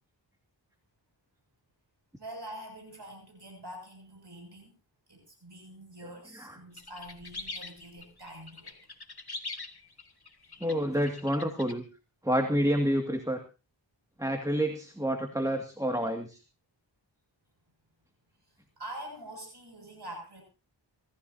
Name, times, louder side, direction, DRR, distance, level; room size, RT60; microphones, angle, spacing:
voice 1, 2.2-4.7 5.1-8.8 18.5-20.4, right 1 dB, 65° right, 1 dB, 6.9 m, -45 dB
sound 1, 6.8-11.7, left 3 dB, 55° left, 2.3 m, -42 dB
voice 2, 10.6-11.8 12.2-13.4 14.2-16.4, equal, 10° right, 5 dB, 2.2 m, -28 dB
26.5 x 14.5 x 2.8 m, 0.32 s
wide cardioid pair, 45°, 44 cm